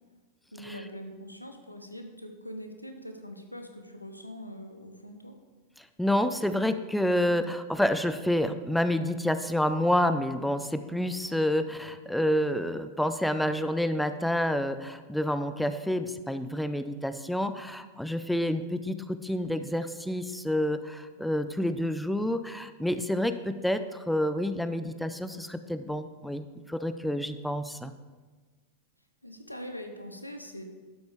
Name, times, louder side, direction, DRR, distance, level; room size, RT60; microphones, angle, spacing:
voice 1, 0.5-5.3 29.2-30.6, equal, 85° left, 6 dB, 0.9 m, -42 dB
voice 2, 5.8-27.9, left 1 dB, ahead, 10 dB, 0.4 m, -28 dB
12.0 x 7.8 x 3.5 m, 1.3 s
figure-of-eight pair, 90°, 0 cm